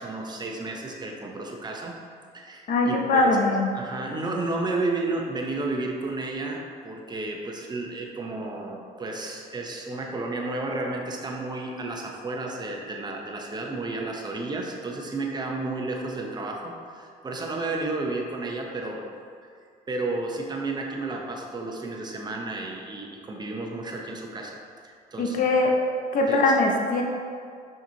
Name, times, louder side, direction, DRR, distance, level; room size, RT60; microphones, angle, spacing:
voice 1, 0.0-1.9 2.3-3.4 3.7-19.0 19.9-25.4 26.3-26.4, right 2 dB, 25° right, 0 dB, 0.8 m, -32 dB
voice 2, 2.7-3.7 25.2-25.7 26.1-27.0, left 2 dB, 50° left, 1 dB, 0.8 m, -21 dB
5.9 x 5.6 x 2.9 m, 2.2 s
cardioid pair, 110°, 17 cm